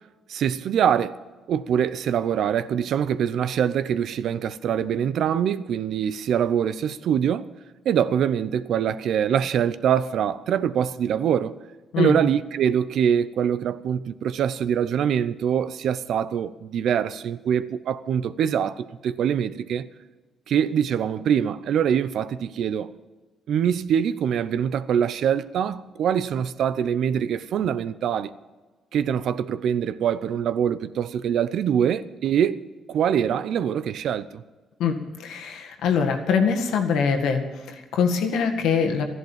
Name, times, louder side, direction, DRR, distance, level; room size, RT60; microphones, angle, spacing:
voice 1, 0.3-1.2 1.5-7.5 7.8-11.5 12.0-19.9 20.5-22.9 23.5-28.3 28.9-32.6 32.9-34.4, right 8 dB, 70° right, 0.7 m, -24 dB
voice 2, 34.8-39.0, left 6 dB, 85° left, 1.8 m, -23 dB
13.5 x 11.0 x 7.4 m
cardioid pair, 90°, 0 cm